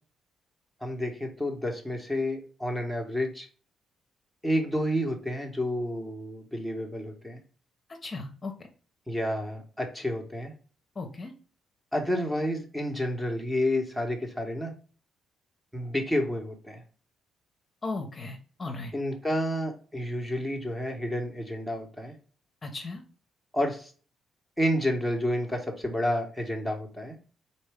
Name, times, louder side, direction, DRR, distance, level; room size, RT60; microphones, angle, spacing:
voice 1, 0.8-3.5 4.4-7.4 9.1-10.5 11.9-14.7 15.7-16.8 18.9-22.1 23.5-23.9 24.6-27.2, equal, 5° right, 3 dB, 1.1 m, -30 dB
voice 2, 8.0-8.5 11.0-11.3 17.8-18.9 22.6-23.0, left 3 dB, 30° left, 3 dB, 0.8 m, -36 dB
4.1 x 2.6 x 3.4 m, 0.39 s
cardioid pair, 90°, 0 cm